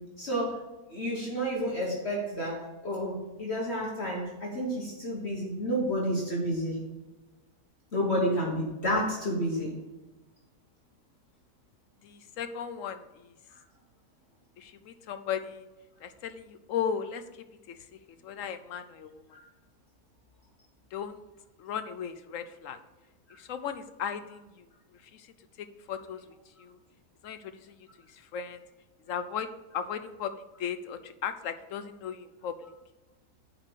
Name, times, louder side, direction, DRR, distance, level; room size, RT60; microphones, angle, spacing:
voice 1, 0.2-0.6 0.9-6.8 7.9-9.7 19.3-19.4, equal, 45° left, -3 dB, 1.6 m, -30 dB
voice 2, 12.0-13.3 14.6-15.7 16.0-17.2 17.7-17.8 18.2-19.2 20.9-21.2 21.6-22.8 23.4-24.5 25.1-25.3 25.9-26.2 26.6-26.8 27.2-27.8 28.1-28.6 29.1-29.5 29.7-30.3 30.6-32.6, left 8 dB, 65° left, 10 dB, 0.9 m, -36 dB
7.4 x 5.0 x 6.6 m, 1.1 s
omnidirectional pair, 1.7 m